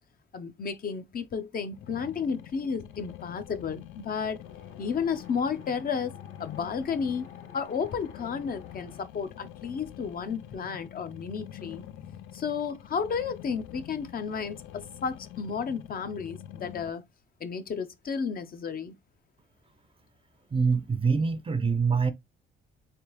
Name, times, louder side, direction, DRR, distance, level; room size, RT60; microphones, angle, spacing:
voice 1, 0.3-4.4 4.8-7.2 7.5-11.8 12.3-17.0 17.4-18.9, left 6 dB, 45° left, 0.7 m, -32 dB
sound 1, 1.7-16.9, left 11 dB, 90° left, 0.5 m, -46 dB
Wind, 4.4-9.0, left 5 dB, 70° left, 1.5 m, -52 dB
voice 2, 20.5-22.1, right 5 dB, 25° right, 0.6 m, -25 dB
3.5 x 3.4 x 3.0 m
cardioid pair, 90°, 20 cm